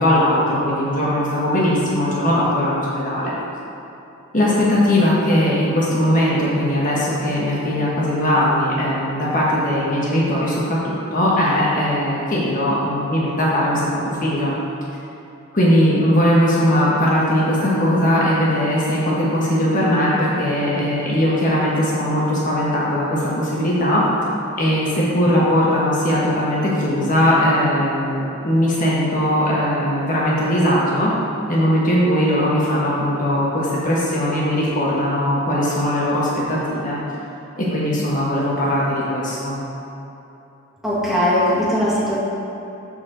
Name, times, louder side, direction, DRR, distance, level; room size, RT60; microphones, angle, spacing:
voice 1, 0.0-3.3 4.3-14.5 15.5-24.0 24.6-31.1 31.5-37.0 37.6-39.6, equal, 40° left, -6 dB, 1.3 m, -19 dB
voice 2, 40.8-42.2, equal, ahead, -9 dB, 1.9 m, -19 dB
12.5 x 4.7 x 3.9 m, 2.9 s
head